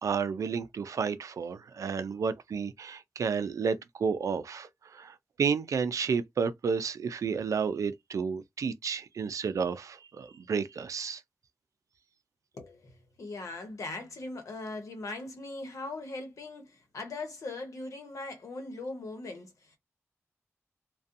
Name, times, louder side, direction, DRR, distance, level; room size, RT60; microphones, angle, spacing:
voice 1, 0.0-11.2, right 6 dB, 80° right, 0.4 m, -31 dB
voice 2, 12.5-19.8, left 2 dB, 80° left, 1.0 m, -40 dB
2.6 x 2.3 x 2.5 m
cardioid pair, 60°, 5 cm